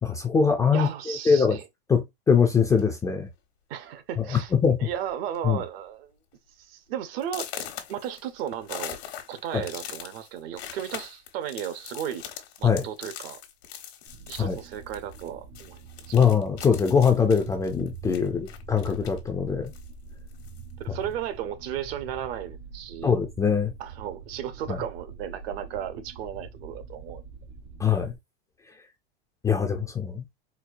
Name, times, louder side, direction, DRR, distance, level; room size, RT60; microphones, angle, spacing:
voice 1, 0.0-1.6 1.9-3.3 4.2-4.3 4.5-4.8 5.4-5.6 9.5-9.6 12.6-12.9 14.4-14.6 16.1-19.7 23.0-23.7 24.7-24.8 27.8-28.1 29.4-30.2, left 6 dB, 10° left, 0.3 m, -22 dB
voice 2, 0.7-1.7 3.7-4.5 4.8-6.1 6.6-7.5 7.9-9.0 9.3-12.3 12.6-13.4 14.3-16.2 20.8-23.2 23.8-27.2, right 10 dB, 65° right, 0.9 m, -35 dB
sound 1, 2.7-3.0 3.8-3.9 4.3-4.6 4.9-5.4 5.8-5.9 6.4-6.5 7.2-15.3 15.5-19.3 19.6-20.7, left 10 dB, 80° left, 1.1 m, -41 dB
sound 2, 14.1-28.2, right 5 dB, 85° right, 1.5 m, -44 dB
4.4 x 2.2 x 2.5 m
supercardioid pair, 135°, 31 cm